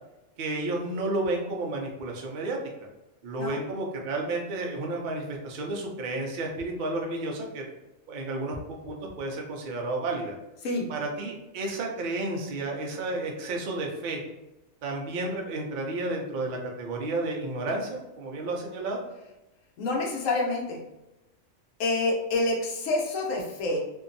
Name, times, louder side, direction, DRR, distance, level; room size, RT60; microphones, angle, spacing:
voice 1, 0.4-2.9 3.2-7.6 8.1-8.6 8.8-10.3 10.9-14.2 14.8-19.0, right 2 dB, 65° right, 0 dB, 0.5 m, -31 dB
voice 2, 19.8-20.8 21.8-23.8, left 2 dB, 80° left, -1 dB, 1.0 m, -27 dB
2.6 x 2.2 x 2.5 m, 0.97 s
omnidirectional pair, 1.4 m